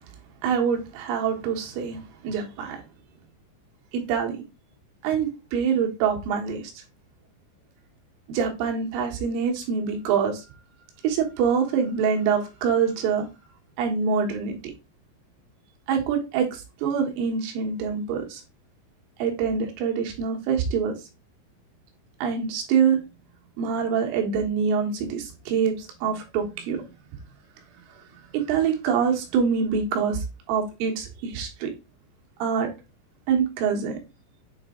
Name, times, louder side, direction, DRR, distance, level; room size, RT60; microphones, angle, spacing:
voice 1, 0.4-2.8 3.9-4.4 5.0-6.8 8.3-10.4 11.0-13.3 13.8-14.6 15.9-18.4 19.2-20.9 22.2-23.0 23.6-26.8 28.3-31.7 32.4-32.7 33.3-34.0, right 6 dB, 85° right, 3.9 m, -25 dB
8.0 x 3.3 x 3.6 m
omnidirectional pair, 5.6 m